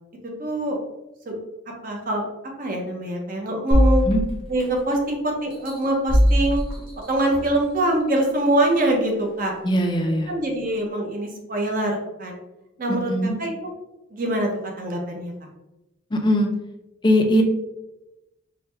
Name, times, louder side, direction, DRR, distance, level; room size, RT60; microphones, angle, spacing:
voice 1, 0.4-0.8 1.3-1.4 1.8-2.3 2.6-4.1 4.5-6.6 7.1-9.5 10.3-12.4 12.8-13.1 13.4-13.7 14.1-14.5 14.8-15.3, right 1 dB, 45° right, 1 dB, 0.7 m, -24 dB
sound 1, 3.7-5.0 5.5-7.6 8.2-8.3, equal, 25° right, 1.0 m, -21 dB
voice 2, 9.6-10.3 13.1-13.4 16.1-16.5 17.0-17.4, equal, 20° left, 4 dB, 0.4 m, -20 dB
4.6 x 2.2 x 3.2 m, 0.96 s
head